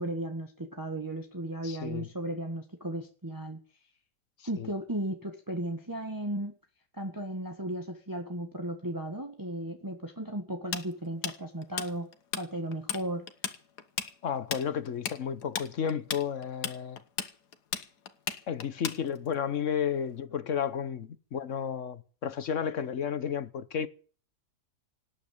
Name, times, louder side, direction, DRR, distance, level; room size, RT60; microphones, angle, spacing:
voice 1, 0.0-3.6 4.5-6.6 6.9-12.1 12.4-13.3, right 1 dB, 15° right, 1.5 m, -35 dB
voice 2, 1.6-2.1 4.6-4.7 14.2-17.0 18.5-23.9, left 8 dB, 55° left, 1.2 m, -32 dB
Tools, 10.7-12.4 12.7-13.0 13.3-19.3, left 8 dB, 75° left, 1.8 m, -35 dB
18.5 x 8.5 x 8.7 m
omnidirectional pair, 1.7 m